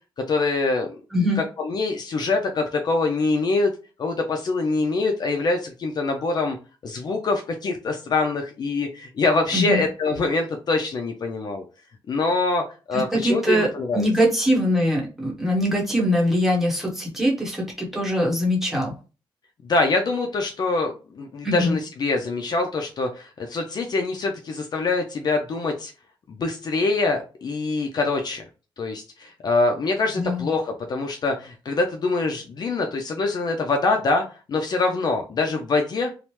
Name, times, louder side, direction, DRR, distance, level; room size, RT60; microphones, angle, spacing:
voice 1, 0.3-0.9 1.4-3.7 4.0-6.6 6.8-11.6 12.1-14.1 19.6-25.9 26.3-28.4 28.8-36.1, left 3 dB, 45° left, 4 dB, 0.4 m, -24 dB
voice 2, 12.9-13.7 13.9-18.9 21.4-21.8 30.2-30.5, equal, 5° right, -3 dB, 0.9 m, -22 dB
2.9 x 2.0 x 3.0 m, 0.33 s
wide cardioid pair, 140°, 9 cm